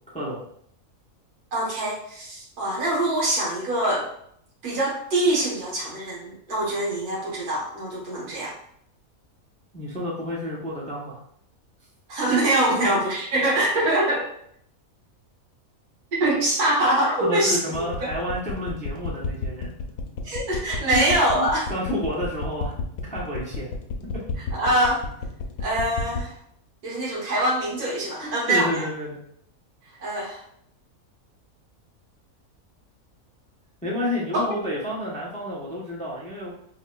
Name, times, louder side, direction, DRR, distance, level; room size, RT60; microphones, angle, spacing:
voice 1, 0.1-0.4 9.7-11.2 17.2-19.7 20.9-22.8 23.0-23.7 24.1-24.2 28.2-29.1 33.8-36.5, left 1 dB, 10° left, -5 dB, 0.5 m, -30 dB
voice 2, 1.5-4.1 4.6-8.5 12.1-14.3 16.2-17.6 18.0-18.1 20.2-21.7 24.5-25.0 25.6-26.4 26.8-28.8 30.0-30.4 34.3-34.6, right 1 dB, 85° right, -4 dB, 1.7 m, -24 dB
sound 1, 17.7-26.3, left 6 dB, 75° left, 1.1 m, -31 dB
4.6 x 2.8 x 2.3 m, 0.68 s
omnidirectional pair, 1.5 m